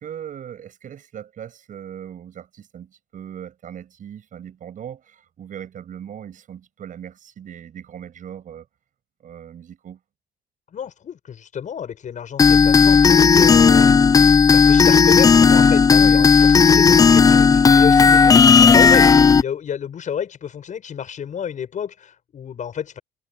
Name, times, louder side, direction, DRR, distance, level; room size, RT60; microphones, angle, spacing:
voice 1, 0.0-8.7 9.2-10.0 16.0-16.3 18.2-18.8, right 9 dB, 50° right, 7.2 m, -38 dB
voice 2, 10.7-14.2 14.5-19.1 19.4-23.0, left 8 dB, 45° left, 7.7 m, -30 dB
sound 1, 12.4-19.4, left 5 dB, 20° left, 0.4 m, -12 dB
cardioid pair, 110°, 17 cm